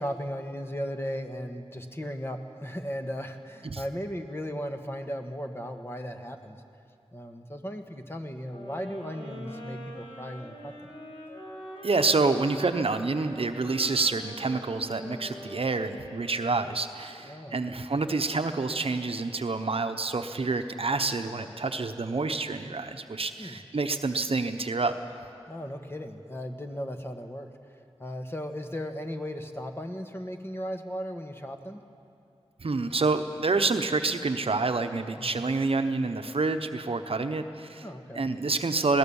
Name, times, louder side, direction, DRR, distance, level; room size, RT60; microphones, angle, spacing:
voice 1, 0.0-6.6 7.1-10.9 17.2-17.8 23.4-23.6 25.5-27.5 28.0-31.8 35.2-35.3 37.8-38.2, equal, 20° left, 5 dB, 1.5 m, -36 dB
sound 1, 8.5-16.7, equal, 60° left, 4.8 m, -43 dB
voice 2, 11.8-24.9 32.6-37.9 38.1-39.0, right 3 dB, 60° right, 8 dB, 0.9 m, -28 dB
21.5 x 17.0 x 7.2 m, 2.5 s
wide cardioid pair, 65°, 11 cm